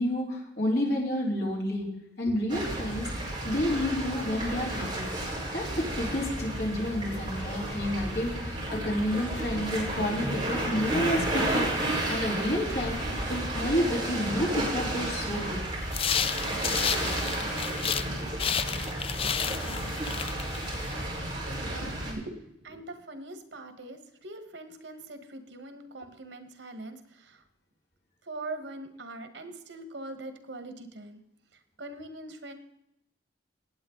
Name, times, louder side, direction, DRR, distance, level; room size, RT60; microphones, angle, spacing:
voice 1, 0.0-5.1 5.5-11.7 12.1-13.0 13.3-15.6, equal, 65° left, -2 dB, 3.9 m, -30 dB
sound 1, 2.5-22.1, right 1 dB, 25° right, 4.6 m, -32 dB
sound 2, 15.9-18.1 18.4-21.0, left 8 dB, 30° left, 0.4 m, -31 dB
voice 2, 21.4-27.4 28.3-31.2 31.8-32.5, right 2 dB, 90° right, 8 dB, 1.6 m, -42 dB
18.0 x 8.5 x 3.9 m, 0.81 s
head